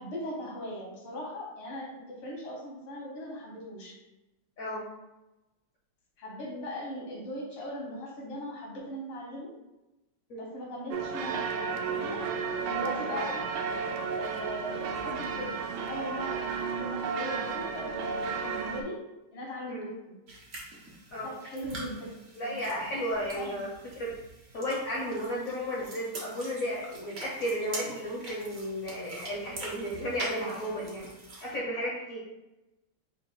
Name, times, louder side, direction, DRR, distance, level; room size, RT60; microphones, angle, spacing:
voice 1, 0.0-3.9 6.2-9.5 10.4-12.2 12.7-13.4 14.1-19.0 19.3-20.2 21.2-22.0 22.4-22.6 23.4-23.6, equal, 85° left, -2 dB, 2.1 m, -39 dB
sound 1, 10.9-18.8, right 5 dB, 80° right, 1.4 m, -33 dB
sound 2, 20.3-31.6, right 2 dB, 45° right, 0.8 m, -44 dB
voice 2, 22.3-23.7 23.9-24.1 24.5-31.1 31.4-32.2, equal, 60° left, -4 dB, 0.9 m, -33 dB
4.3 x 2.5 x 4.4 m, 0.99 s
omnidirectional pair, 2.3 m